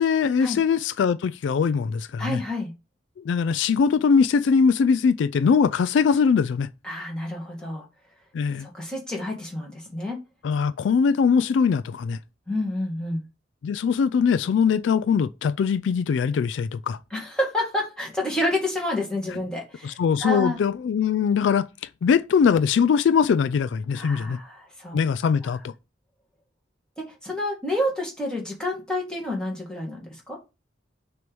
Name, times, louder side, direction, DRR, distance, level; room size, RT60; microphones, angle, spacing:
voice 1, 0.0-2.4 3.2-6.7 8.3-8.7 10.4-12.2 13.6-17.0 19.8-21.7 22.0-24.4 24.9-25.7, left 6 dB, 75° left, 0.3 m, -21 dB
voice 2, 2.2-2.7 6.8-7.9 8.6-10.2 12.5-13.2 17.1-20.6 23.9-25.0 25.4-25.5 27.0-30.4, left 1 dB, 5° left, 1.9 m, -29 dB
6.2 x 3.1 x 5.2 m
head